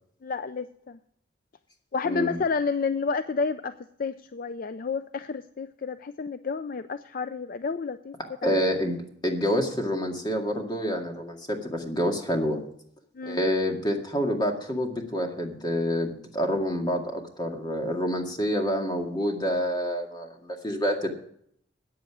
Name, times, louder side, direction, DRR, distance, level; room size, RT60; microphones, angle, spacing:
voice 1, 0.2-1.0 1.9-8.1 8.4-8.7 13.2-13.4, left 5 dB, 50° left, 12 dB, 0.4 m, -30 dB
voice 2, 2.0-2.4 8.4-12.6 13.3-21.1, equal, 25° left, 2 dB, 2.1 m, -27 dB
14.5 x 9.3 x 4.9 m, 0.68 s
head